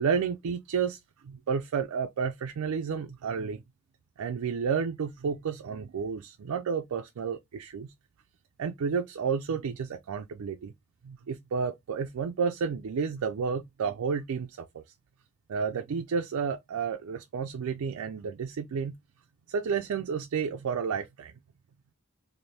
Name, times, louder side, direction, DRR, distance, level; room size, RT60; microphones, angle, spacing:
voice 1, 0.0-3.6 4.2-7.9 8.6-10.7 11.0-14.8 15.5-18.9 19.5-21.3, right 6 dB, 80° right, 0.4 m, -31 dB
3.3 x 2.6 x 4.0 m
head